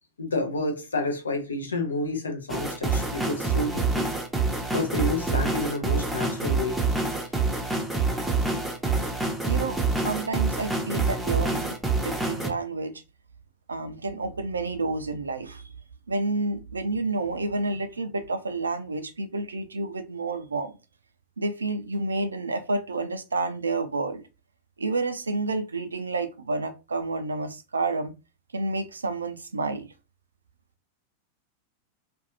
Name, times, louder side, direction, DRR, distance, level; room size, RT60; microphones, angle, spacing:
voice 1, 0.2-4.1 4.7-6.8, left 2 dB, 75° left, 0.6 m, -29 dB
sound 1, 2.5-12.5, right 3 dB, 5° right, 0.6 m, -26 dB
voice 2, 9.4-9.8 10.0-11.8 12.0-12.9 13.7-15.6 16.1-20.7 21.4-24.2 24.8-28.1 28.5-29.9, right 3 dB, 75° right, 0.3 m, -29 dB
2.5 x 2.2 x 2.7 m
figure-of-eight pair, 90°, 0 cm